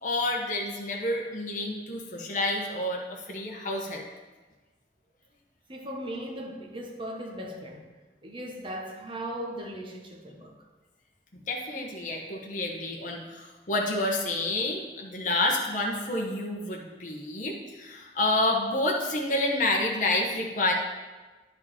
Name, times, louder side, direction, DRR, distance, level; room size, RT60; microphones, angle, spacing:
voice 1, 0.0-4.0 11.5-20.7, left 2 dB, 45° left, -1 dB, 1.0 m, -29 dB
voice 2, 5.7-7.9 8.2-10.5, equal, 30° right, 1 dB, 1.1 m, -38 dB
10.0 x 4.8 x 4.3 m, 1.2 s
head